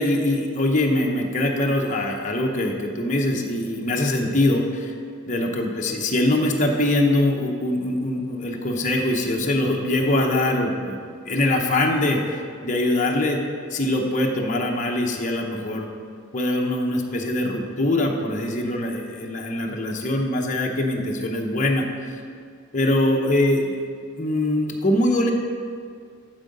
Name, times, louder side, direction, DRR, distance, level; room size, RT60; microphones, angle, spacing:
voice 1, 0.0-4.9 5.3-11.0 11.3-13.4 13.7-15.9 16.3-22.2 22.7-23.8 24.2-25.3, left 1 dB, 35° left, 0 dB, 0.8 m, -23 dB
11.5 x 4.7 x 5.3 m, 2.2 s
head